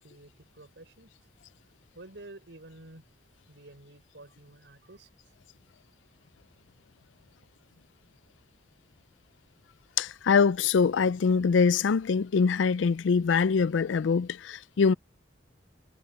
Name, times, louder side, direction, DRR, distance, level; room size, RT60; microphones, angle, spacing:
voice 1, 0.0-1.1 1.9-3.1 3.5-5.4, right 2 dB, 70° right, 5.2 m, -50 dB
voice 2, 10.0-14.9, left 5 dB, 90° left, 0.4 m, -24 dB
head